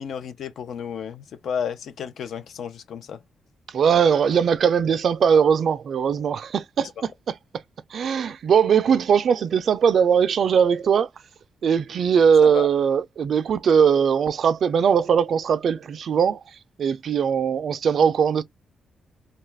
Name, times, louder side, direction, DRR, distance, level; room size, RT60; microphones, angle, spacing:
voice 1, 0.0-3.2 12.4-12.7, left 7 dB, 70° left, 0.5 m, -32 dB
voice 2, 3.7-7.3 7.9-11.1 11.6-16.4 16.8-18.4, right 7 dB, 55° right, 0.3 m, -20 dB
2.8 x 2.3 x 3.2 m
wide cardioid pair, 155°, 0 cm